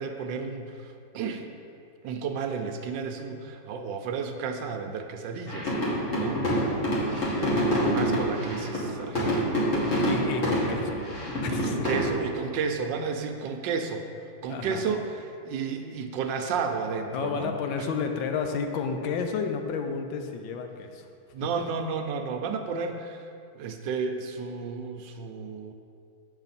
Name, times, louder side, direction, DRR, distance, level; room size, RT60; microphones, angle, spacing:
voice 1, 0.0-1.4 2.0-6.4 7.1-10.1 11.5-14.1 14.4-15.1 15.4-17.5 17.8-17.9 21.3-23.3 23.5-25.7, right 5 dB, 75° right, 6 dB, 1.2 m, -32 dB
sound 1, 5.5-12.1, equal, 40° left, 1.8 m, -27 dB
voice 2, 6.5-7.6 10.0-10.9 11.4-11.9 14.5-15.1 17.1-21.1, left 5 dB, 85° left, 5 dB, 1.4 m, -32 dB
8.0 x 6.8 x 4.1 m, 2.4 s
omnidirectional pair, 2.1 m